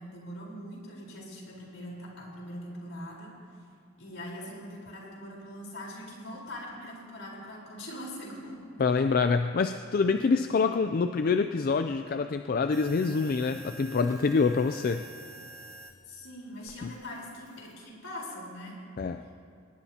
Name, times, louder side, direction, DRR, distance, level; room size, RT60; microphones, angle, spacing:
voice 1, 0.0-3.3 4.0-8.8 16.1-18.8, equal, 75° left, -3 dB, 4.3 m, -42 dB
voice 2, 8.8-15.0 16.8-16.9 19.0-19.2, left 4 dB, 45° left, 8 dB, 0.4 m, -26 dB
sound 1, 12.7-16.0 16.7-17.7, right 2 dB, 15° right, 1.3 m, -48 dB
22.5 x 19.0 x 2.9 m, 2.4 s
head